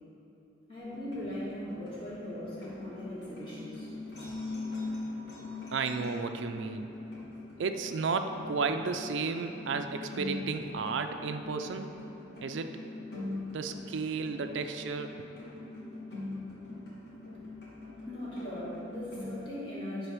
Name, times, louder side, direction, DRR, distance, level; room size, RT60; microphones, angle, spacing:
voice 1, 0.7-3.9 18.0-20.1, equal, 25° left, -9 dB, 2.1 m, -39 dB
sound 1, 0.8-19.3, left 2 dB, 65° left, 2.2 m, -42 dB
voice 2, 5.7-6.9 7.6-11.9 12.4-12.8 13.5-15.2, right 4 dB, 85° right, 7 dB, 0.4 m, -33 dB
11.0 x 4.0 x 6.1 m, 2.8 s
head